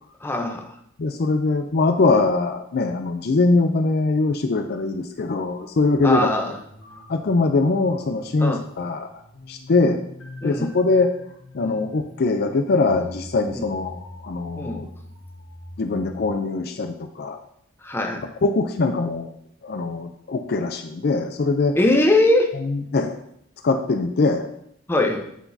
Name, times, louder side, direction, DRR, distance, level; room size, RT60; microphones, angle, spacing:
voice 1, 0.2-0.7 6.0-6.5 8.4-8.6 10.4-10.8 11.6-11.8 13.5-13.6 14.6-14.9 17.8-18.2 21.7-22.5 24.9-25.3, left 1 dB, 10° left, 2 dB, 0.7 m, -21 dB
voice 2, 1.0-6.6 7.1-9.1 9.5-10.0 10.4-11.1 11.5-14.9 15.8-17.4 18.4-19.3 19.6-21.8 22.5-23.2 23.6-24.5, left 3 dB, 50° left, 7 dB, 0.4 m, -22 dB
sound 1, 6.0-16.3, left 1 dB, 75° left, 1.5 m, -44 dB
8.1 x 6.0 x 2.7 m, 0.71 s
head